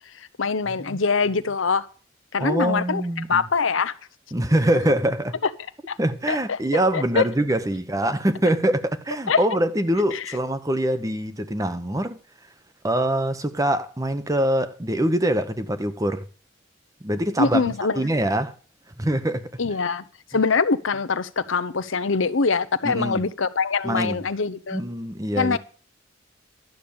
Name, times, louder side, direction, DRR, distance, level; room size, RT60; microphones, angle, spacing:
voice 1, 0.2-1.9 2.3-3.0 3.3-3.9 5.9-6.0 6.3-6.6 6.9-7.2 9.3-9.4 10.1-10.2 17.4-18.0 19.6-20.0 20.3-24.8 25.4-25.6, left 4 dB, 90° left, 0.8 m, -23 dB
voice 2, 2.4-3.5 4.3-5.4 6.0-12.2 12.8-16.2 17.0-18.5 19.0-19.5 22.8-23.2 23.8-24.2 24.7-25.6, right 1 dB, 15° right, 0.9 m, -24 dB
12.0 x 7.0 x 8.7 m
head